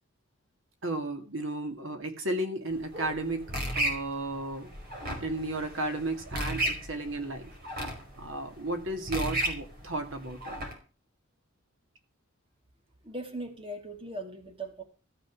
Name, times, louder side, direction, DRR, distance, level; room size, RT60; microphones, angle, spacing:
voice 1, 0.8-4.7 5.2-7.5 8.2-10.6, right 2 dB, 70° right, 5 dB, 2.5 m, -34 dB
sound 1, 2.7-10.7, right 1 dB, 45° right, 4.8 m, -35 dB
voice 2, 13.1-14.8, right 1 dB, 25° right, 5 dB, 2.2 m, -39 dB
15.0 x 7.5 x 7.2 m, 0.35 s
head